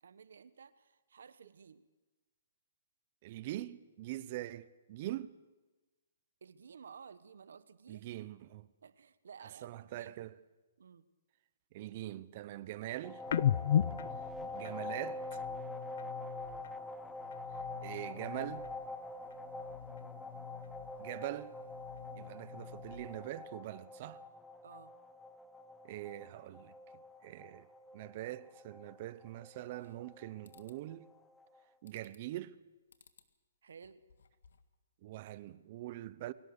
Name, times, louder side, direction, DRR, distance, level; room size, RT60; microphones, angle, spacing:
voice 1, 0.0-1.8 6.4-8.0 8.8-10.3 10.8-11.1 24.6-25.0 33.6-34.0, right 6 dB, 80° right, 1.1 m, -54 dB
voice 2, 3.2-5.4 7.9-8.7 9.6-10.4 11.7-13.2 14.5-15.4 17.8-18.7 21.0-21.5 22.2-24.2 25.8-26.7 27.2-27.7 27.9-31.1 31.8-32.6 35.0-36.3, right 15 dB, 40° right, 0.8 m, -43 dB
sound 1, 13.0-31.6, left 2 dB, 5° left, 0.9 m, -46 dB
sound 2, 13.3-16.8 17.1-19.0 19.3-21.1 21.5-23.3, left 9 dB, 55° left, 0.5 m, -38 dB
sound 3, 29.5-30.1 30.4-30.8 31.9-32.4 32.9-33.3 33.7-34.7, left 6 dB, 85° left, 1.7 m, -64 dB
23.0 x 18.0 x 6.6 m
hypercardioid pair, 155°, 0 cm